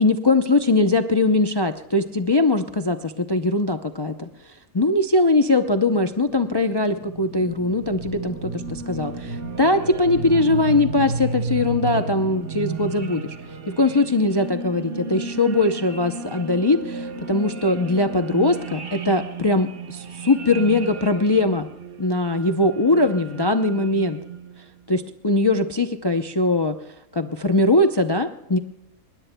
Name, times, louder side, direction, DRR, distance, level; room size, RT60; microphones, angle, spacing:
voice 1, 0.0-13.4 13.7-21.7 22.0-24.2 24.9-26.8 27.1-28.6, left 2 dB, 35° left, 7 dB, 0.3 m, -21 dB
sound 1, 6.2-24.6, right 4 dB, 45° right, 1.0 m, -33 dB
21.0 x 20.0 x 2.2 m, 0.84 s
omnidirectional pair, 1.5 m